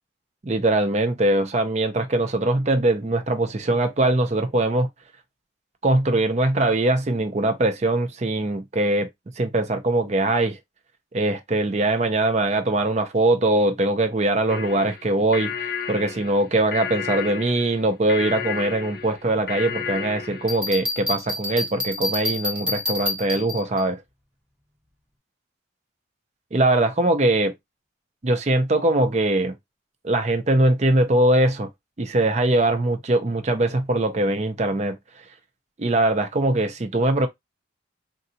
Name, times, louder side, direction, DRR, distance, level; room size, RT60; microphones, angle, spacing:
voice 1, 0.4-4.9 5.8-9.1 9.4-10.6 11.1-24.0 26.5-27.5 28.2-29.6 30.0-31.7 32.0-35.0 35.8-37.3, right 2 dB, 35° right, 0.5 m, -22 dB
sound 1, 14.5-20.6, left 7 dB, 50° left, 0.5 m, -32 dB
Bell, 20.5-23.8, left 2 dB, 5° right, 0.7 m, -28 dB
3.8 x 2.3 x 2.7 m
head